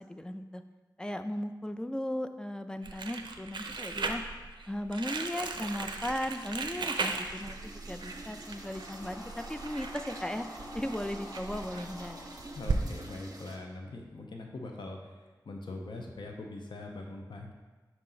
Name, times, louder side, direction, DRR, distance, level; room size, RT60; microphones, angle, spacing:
voice 1, 0.1-0.6 1.0-4.2 4.7-10.5 10.7-12.3, left 1 dB, 10° left, 8 dB, 0.3 m, -37 dB
Crumpling crinkling, 2.8-12.8, right 4 dB, 85° right, 0.4 m, -37 dB
sound 1, 5.3-13.6, right 2 dB, 50° right, 0.8 m, -48 dB
sound 2, 8.1-13.3, left 1 dB, 35° left, 1.1 m, -50 dB
voice 2, 12.5-17.5, left 2 dB, 80° left, 1 dB, 0.6 m, -42 dB
5.8 x 4.2 x 3.8 m, 1.3 s
wide cardioid pair, 70°, 8 cm